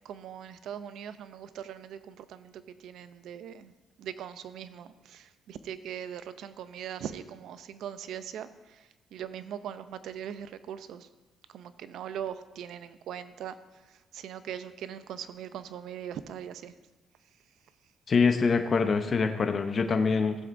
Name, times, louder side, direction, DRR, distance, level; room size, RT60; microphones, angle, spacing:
voice 1, 0.0-3.7 4.0-11.1 11.5-13.5 14.1-16.7, right 9 dB, 80° right, 13 dB, 0.5 m, -40 dB
voice 2, 18.1-20.4, left 5 dB, 45° left, 6 dB, 0.7 m, -24 dB
15.0 x 7.7 x 2.6 m, 1.1 s
cardioid pair, 90°, 0 cm